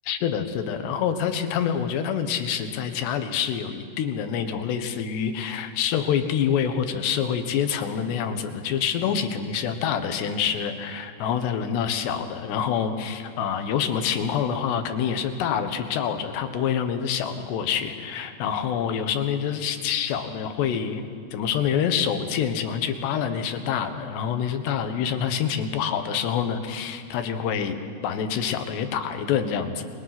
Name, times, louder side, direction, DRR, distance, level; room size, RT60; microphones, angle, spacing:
voice 1, 0.1-21.0 21.3-29.9, left 8 dB, 80° left, 7 dB, 3.5 m, -26 dB
29.5 x 22.5 x 6.0 m, 2.5 s
omnidirectional pair, 4.8 m